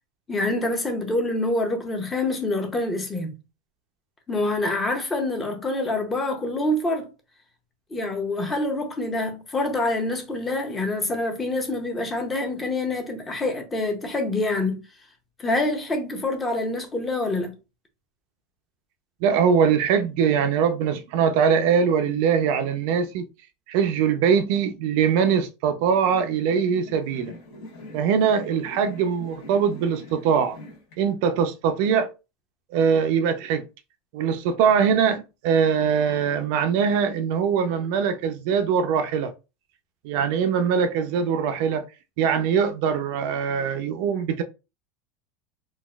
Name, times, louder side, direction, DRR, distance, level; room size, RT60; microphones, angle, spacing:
voice 1, 0.3-3.4 4.3-7.1 7.9-14.8 15.4-17.5, left 2 dB, 15° left, 0.6 m, -26 dB
voice 2, 19.2-23.3 23.7-27.3 27.9-30.6 31.0-32.1 32.7-33.6 34.1-39.3 40.0-41.8 42.2-44.4, right 7 dB, 55° right, 0.4 m, -22 dB
sound 1, 25.8-31.0, left 1 dB, 60° left, 1.2 m, -43 dB
3.9 x 2.3 x 2.3 m
supercardioid pair, 170°, 0 cm